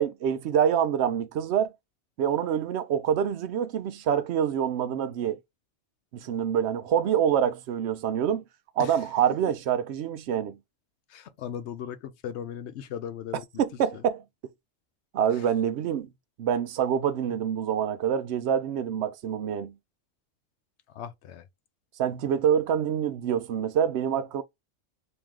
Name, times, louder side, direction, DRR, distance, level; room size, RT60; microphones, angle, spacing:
voice 1, 0.0-1.7 2.2-5.4 6.1-8.4 8.8-10.6 13.6-14.2 15.1-16.1 16.4-19.7 22.0-24.4, right 9 dB, 65° right, 0.8 m, -26 dB
voice 2, 11.1-14.1 15.3-15.5 20.9-21.5, left 9 dB, 65° left, 0.9 m, -38 dB
3.1 x 2.9 x 3.6 m
omnidirectional pair, 1.3 m